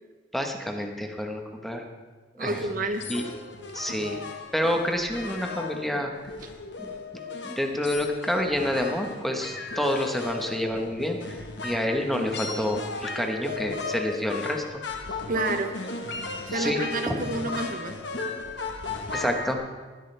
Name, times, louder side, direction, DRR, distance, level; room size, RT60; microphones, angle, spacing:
voice 1, 0.3-1.8 2.4-2.6 3.1-3.2 3.7-4.2 4.5-6.1 6.8-6.9 7.4-11.4 11.6-14.8 16.5-16.8 17.1-17.2 19.1-19.6, left 1 dB, ahead, 3 dB, 1.2 m, -28 dB
voice 2, 2.4-3.1 15.3-15.8 16.5-18.0, right 2 dB, 50° right, 7 dB, 0.9 m, -29 dB
sound 1, 2.5-19.5, left 3 dB, 70° left, 1.4 m, -35 dB
19.5 x 12.5 x 3.4 m, 1.4 s
head